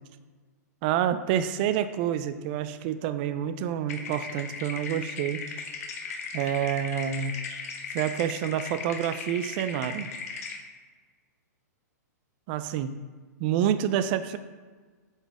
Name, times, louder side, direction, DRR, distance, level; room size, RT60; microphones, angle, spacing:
voice 1, 0.8-5.5 6.3-7.4 7.9-10.1 12.5-12.9 13.4-14.4, right 10 dB, 35° right, 11 dB, 0.3 m, -28 dB
sound 1, 3.9-10.6, left 5 dB, 55° left, 0.9 m, -37 dB
7.7 x 4.0 x 3.6 m, 1.5 s
hypercardioid pair, 150°, 10 cm